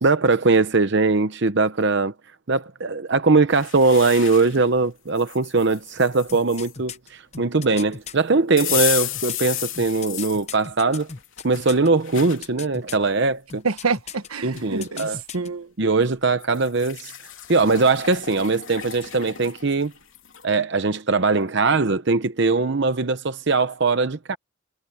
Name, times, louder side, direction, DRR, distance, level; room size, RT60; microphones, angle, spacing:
voice 1, 0.0-2.1 2.5-11.1 11.4-13.6 14.4-15.2 15.8-17.1 17.5-19.9 20.4-24.4, right 3 dB, 55° right, 0.8 m, -21 dB
sound 1, 3.5-4.6 5.2-6.7 8.6-10.4 11.0-12.4 13.0-13.1 14.2-14.3 14.6-15.1 16.4-20.5, left 13 dB, 65° left, 3.3 m, -32 dB
sound 2, 6.3-8.1 8.7-11.9 12.1-13.1 13.5-14.3 14.5-15.5 15.8-15.9, left 5 dB, 30° left, 0.8 m, -37 dB
voice 2, 13.6-15.7, right 4 dB, 85° right, 1.3 m, -27 dB
head